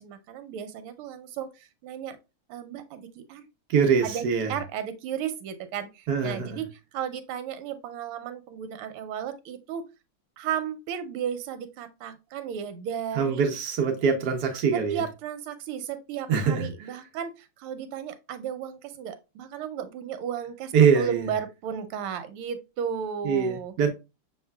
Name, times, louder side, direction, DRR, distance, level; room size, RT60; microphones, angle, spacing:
voice 1, 0.0-2.2 2.5-3.5 4.0-6.7 6.9-9.9 10.4-13.4 14.7-23.8, right 8 dB, 85° right, 1.5 m, -34 dB
voice 2, 3.7-4.5 6.1-6.6 13.2-15.0 16.3-16.7 20.7-21.3 23.2-23.9, right 6 dB, 65° right, 1.1 m, -23 dB
6.4 x 3.2 x 2.2 m
omnidirectional pair, 2.4 m